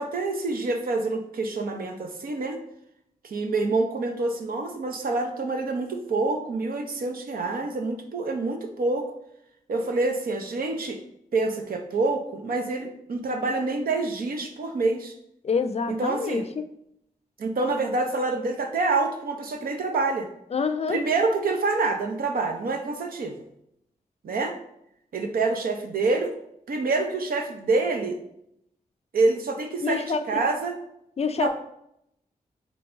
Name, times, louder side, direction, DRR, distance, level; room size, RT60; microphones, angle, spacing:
voice 1, 0.0-2.6 3.2-9.1 9.7-11.0 11.3-15.1 15.9-16.5 17.4-20.3 20.9-23.4 24.2-24.5 25.1-26.4 26.7-28.2 29.1-30.8 31.4-31.5, right 3 dB, 75° right, 4 dB, 0.7 m, -27 dB
voice 2, 15.4-16.6 20.5-21.0 29.8-30.2 31.2-31.5, left 5 dB, 45° left, 11 dB, 0.4 m, -26 dB
3.8 x 3.5 x 3.8 m, 0.76 s
cardioid pair, 50°, 15 cm